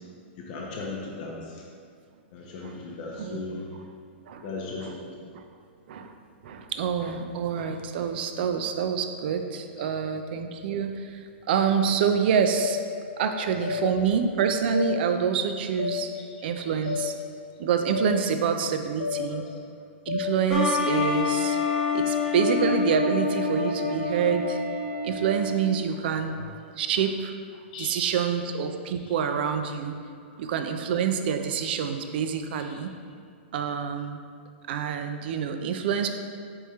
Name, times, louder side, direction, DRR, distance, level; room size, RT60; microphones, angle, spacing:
voice 1, 0.4-1.6 2.3-3.8 4.4-5.1 9.8-10.2 13.1-13.7 16.2-17.0 19.3-19.5 27.7-28.2 29.0-29.1 30.2-30.4 32.6-32.8, left 3 dB, 45° left, -3 dB, 0.6 m, -38 dB
voice 2, 3.2-3.5 4.3-4.4 4.8-4.9 5.3-5.4 5.9-6.1 6.4-12.8 13.2-16.1 16.4-17.1 17.6-19.4 20.1-21.6 21.9-24.6 25.0-27.3 27.8-29.9 30.4-32.9 33.5-34.2 34.7-36.1, right 7 dB, 60° right, 7 dB, 0.3 m, -27 dB
sound 1, 12.6-12.7 13.6-13.8 14.7-14.9 15.8-15.9 16.9-17.0 17.9-18.1 19.0-19.2 20.1-20.2, left 6 dB, 90° left, 0.7 m, -29 dB
sound 2, 20.5-25.9, left 4 dB, ahead, 0.9 m, -27 dB
Wind instrument woodwind instrument, 20.8-25.8, left 5 dB, 30° right, 0.8 m, -38 dB
4.4 x 3.5 x 2.8 m, 2.2 s
hypercardioid pair, 140°, 6 cm